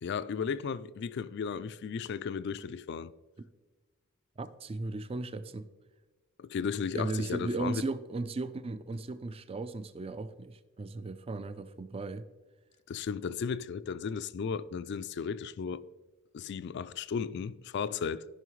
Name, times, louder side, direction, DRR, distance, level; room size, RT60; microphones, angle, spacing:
voice 1, 0.0-3.1 6.4-7.8 12.9-15.8 16.3-18.3, left 6 dB, 55° left, 0.3 m, -35 dB
voice 2, 4.4-5.7 6.9-12.3, right 3 dB, 30° right, 0.4 m, -36 dB
14.5 x 5.6 x 3.1 m
head